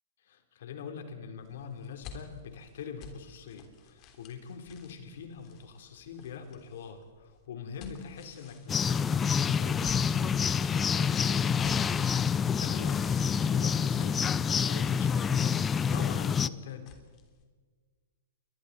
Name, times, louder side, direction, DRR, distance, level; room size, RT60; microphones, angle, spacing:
voice 1, 0.2-15.6 15.9-16.9, left 6 dB, 65° left, 6 dB, 3.4 m, -44 dB
sound 1, 1.4-17.4, left 5 dB, 40° left, 3.3 m, -53 dB
sound 2, 8.7-16.5, left 7 dB, 20° left, 0.6 m, -27 dB
29.0 x 23.5 x 4.2 m, 1.5 s
hypercardioid pair, 115°, 0 cm